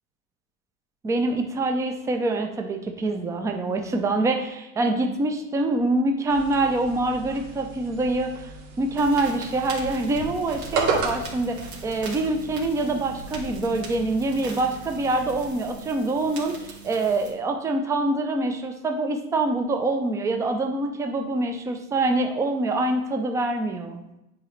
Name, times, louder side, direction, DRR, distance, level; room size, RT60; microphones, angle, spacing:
voice 1, 1.0-8.3 8.8-24.0, right 2 dB, 5° right, 5 dB, 0.4 m, -25 dB
sound 1, 6.3-15.5, right 4 dB, 60° right, 2.2 m, -35 dB
sound 2, 9.0-17.3, right 3 dB, 85° right, 2.4 m, -41 dB
9.8 x 3.8 x 3.2 m, 0.91 s
hypercardioid pair, 110°, 46 cm